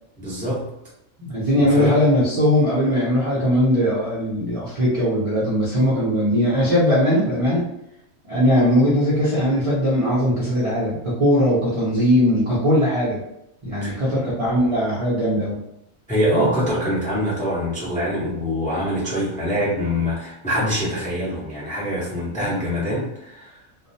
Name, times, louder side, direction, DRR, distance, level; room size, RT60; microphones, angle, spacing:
voice 1, 0.2-0.7 1.6-2.0 13.8-14.0 16.1-23.6, equal, 10° left, -7 dB, 0.5 m, -24 dB
voice 2, 1.2-7.6 8.3-13.2 13.6-15.6, equal, 40° right, -9 dB, 0.4 m, -19 dB
2.4 x 2.0 x 2.6 m, 0.82 s
omnidirectional pair, 1.5 m